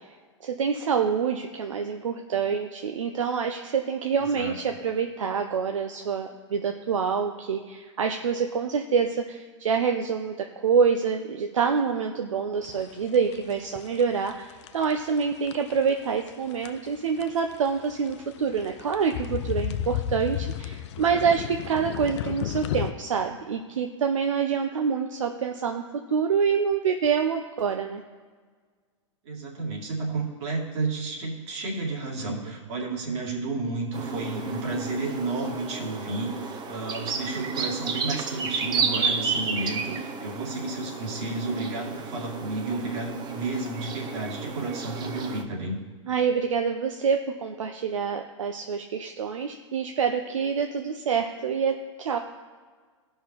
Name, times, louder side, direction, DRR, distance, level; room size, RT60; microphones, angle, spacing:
voice 1, 0.4-25.8 26.1-28.0 46.1-52.2, right 6 dB, 85° right, 5 dB, 0.6 m, -26 dB
sound 1, 12.6-22.9, left 11 dB, 65° left, 0.5 m, -33 dB
voice 2, 29.2-45.8, right 3 dB, 65° right, -2 dB, 2.3 m, -31 dB
sound 2, 33.9-45.4, right 5 dB, 25° right, 0.8 m, -32 dB
16.0 x 5.6 x 2.9 m, 1.5 s
hypercardioid pair, 110°, 16 cm